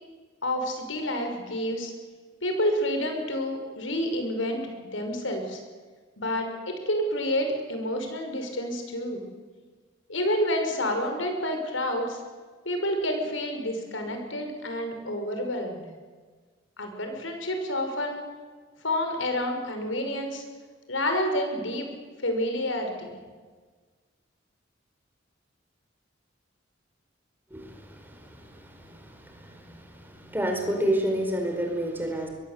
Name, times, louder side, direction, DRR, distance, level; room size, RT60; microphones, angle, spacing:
voice 1, 0.4-1.9 2.4-5.6 6.2-9.3 10.1-12.2 12.7-15.9 16.8-18.2 18.8-20.4 20.9-21.9 22.2-23.2, left 1 dB, 85° left, 5 dB, 5.7 m, -29 dB
voice 2, 27.5-32.3, right 1 dB, 10° right, 3 dB, 4.9 m, -30 dB
25.0 x 22.0 x 8.3 m, 1.4 s
head